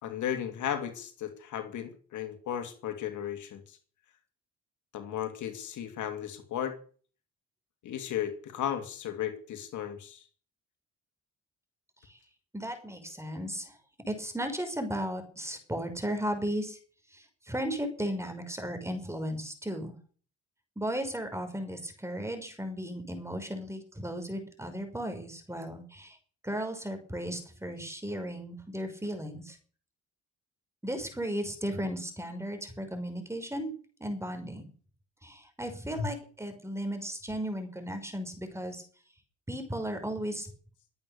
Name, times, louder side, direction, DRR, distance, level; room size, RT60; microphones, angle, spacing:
voice 1, 0.0-3.8 4.9-6.8 7.8-10.2 36.0-36.1, left 10 dB, 75° left, 7 dB, 2.5 m, -35 dB
voice 2, 12.5-13.7 14.1-16.8 17.5-19.9 20.8-26.2 26.4-29.6 30.8-33.7 34.0-34.6 35.2-38.8 39.5-40.5, equal, 10° right, 6 dB, 5.5 m, -35 dB
23.5 x 8.8 x 6.8 m, 0.44 s
cardioid pair, 90°, 30 cm